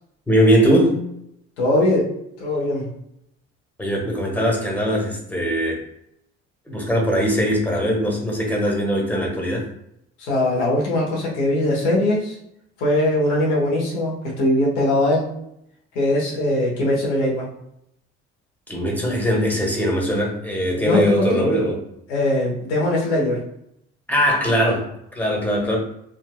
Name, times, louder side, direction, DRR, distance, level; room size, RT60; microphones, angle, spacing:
voice 1, 0.3-1.0 3.8-5.8 6.7-9.7 18.7-21.8 24.1-25.8, equal, 5° left, -1 dB, 1.3 m, -20 dB
voice 2, 1.6-2.1 2.4-2.9 10.2-12.4 12.8-15.3 15.9-17.5 20.7-21.4 22.1-23.4, left 1 dB, 80° left, -4 dB, 1.2 m, -21 dB
3.5 x 2.7 x 2.3 m, 0.76 s
hypercardioid pair, 50°, 35 cm